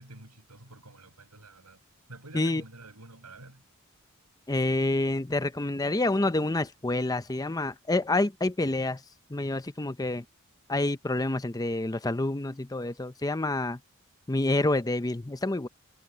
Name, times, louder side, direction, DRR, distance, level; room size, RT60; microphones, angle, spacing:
voice 1, 0.0-1.8 2.1-3.6, right 2 dB, 85° right, 6.7 m, -48 dB
voice 2, 4.5-9.0 9.3-10.2 10.7-13.8 14.3-15.7, left 2 dB, 15° left, 0.7 m, -28 dB
head